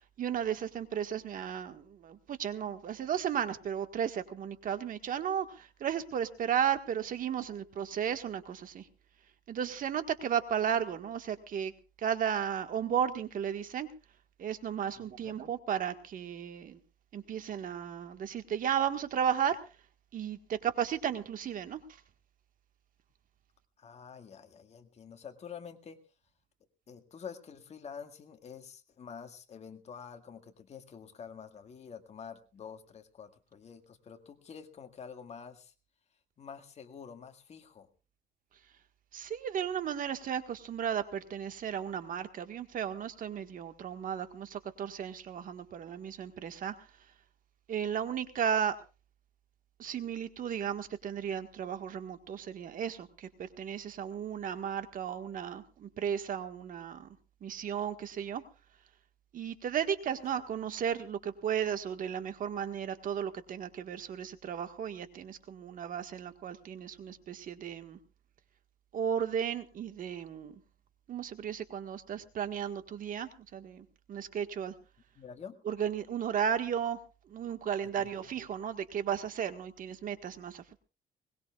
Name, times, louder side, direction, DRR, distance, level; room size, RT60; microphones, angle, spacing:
voice 1, 0.2-8.9 9.5-11.7 12.0-13.9 14.4-16.8 17.1-19.6 20.1-22.0 39.1-46.7 47.7-48.8 49.8-57.2 57.4-58.4 59.3-68.0 68.9-70.6 71.1-74.7 75.6-77.0 77.3-80.8, right 8 dB, 55° right, 8 dB, 1.6 m, -34 dB
voice 2, 15.0-15.4 23.8-26.0 26.9-35.7 36.4-37.9 60.2-60.3 75.2-75.6 78.0-78.1, left 6 dB, 40° left, 7 dB, 1.9 m, -48 dB
21.5 x 20.0 x 2.4 m, 0.32 s
cardioid pair, 110°, 17 cm